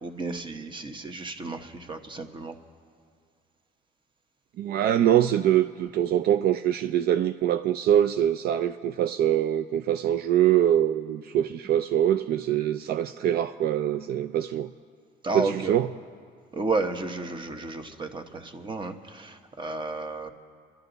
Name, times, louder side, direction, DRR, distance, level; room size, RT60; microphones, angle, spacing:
voice 1, 0.0-2.6 15.2-15.8 16.5-20.3, right 3 dB, 30° right, 7 dB, 1.2 m, -32 dB
voice 2, 4.6-14.7 15.3-15.9, right 11 dB, 65° right, 9 dB, 0.4 m, -24 dB
27.5 x 11.5 x 4.0 m, 2.2 s
cardioid pair, 110°, 17 cm